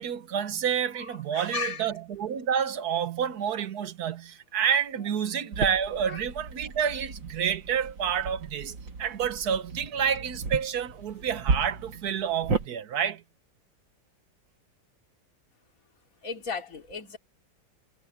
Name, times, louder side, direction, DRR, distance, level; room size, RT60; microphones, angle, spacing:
voice 1, 0.0-13.2, right 8 dB, 60° right, 1.6 m, -29 dB
voice 2, 1.3-1.9 6.1-6.2 16.2-17.2, left 5 dB, 50° left, 3.1 m, -34 dB
sound 1, 5.5-12.7, right 4 dB, 90° right, 2.9 m, -34 dB
omnidirectional pair, 1.9 m